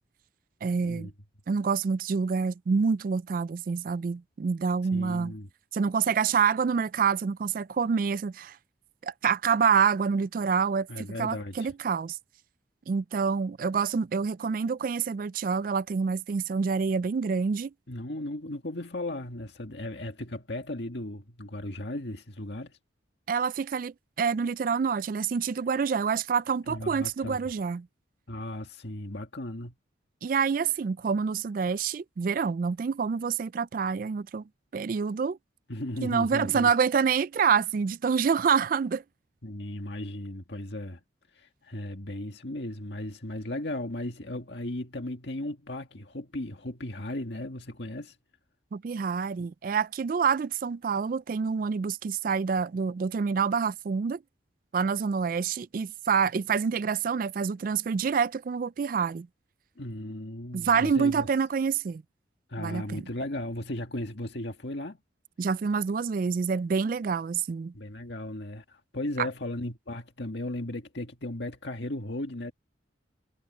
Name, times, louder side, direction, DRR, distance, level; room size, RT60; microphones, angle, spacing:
voice 1, 0.6-1.1 1.5-5.3 5.7-8.6 9.0-12.2 12.9-17.7 23.3-27.9 30.2-34.4 34.7-35.4 36.0-39.0 48.7-54.2 54.7-59.3 60.5-62.0 62.6-63.0 65.4-67.7 69.2-69.3, right 6 dB, 45° right, 0.3 m, -27 dB
voice 2, 4.9-5.5 10.9-11.7 17.9-22.8 26.7-27.4 28.3-29.7 35.7-36.7 39.4-41.0 41.3-48.1 59.8-61.3 62.5-65.0 67.7-72.5, left 1 dB, 65° left, 1.9 m, -36 dB
head